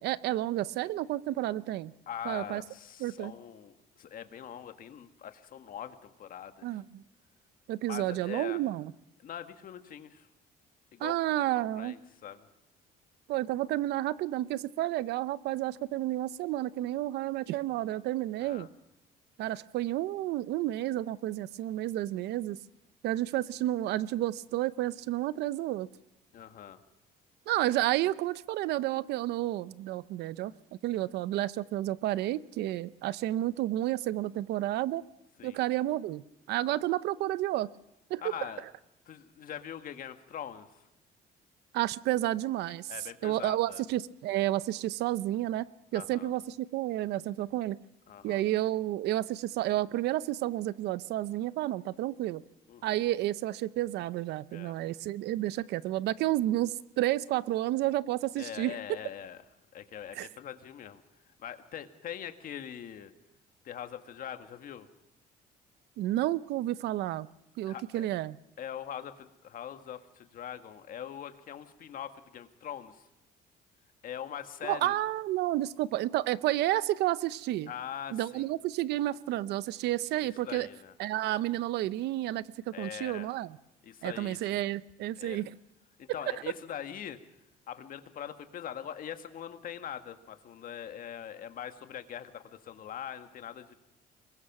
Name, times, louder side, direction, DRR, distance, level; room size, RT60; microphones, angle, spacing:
voice 1, 0.0-1.9 2.2-2.6 3.0-3.3 6.6-7.0 7.7-8.9 11.0-12.0 13.3-18.7 19.4-22.6 23.0-25.9 27.5-30.5 30.8-35.0 35.4-37.7 38.1-38.3 41.7-42.9 43.2-45.7 45.9-47.8 48.2-52.4 52.8-58.8 60.1-60.3 66.0-67.3 67.6-68.4 74.6-77.7 78.1-80.7 81.0-83.6 84.0-85.5, right 15 dB, 80° right, 17 dB, 0.8 m, -31 dB
voice 2, 2.1-6.8 7.9-8.6 9.2-10.3 10.9-12.5 18.4-18.7 26.3-26.8 35.4-35.6 38.2-38.6 39.1-40.7 42.9-43.8 45.9-46.3 48.1-48.4 52.7-53.0 54.5-54.7 58.4-59.4 59.7-61.0 61.4-63.1 63.6-64.9 67.6-68.1 68.6-73.1 74.0-75.0 77.7-78.5 80.2-80.9 82.7-83.3 83.8-84.7 85.2-85.4 86.0-87.2 87.7-93.7, left 9 dB, 55° left, 8 dB, 1.8 m, -42 dB
24.5 x 21.0 x 6.1 m, 0.89 s
cardioid pair, 110°, 17 cm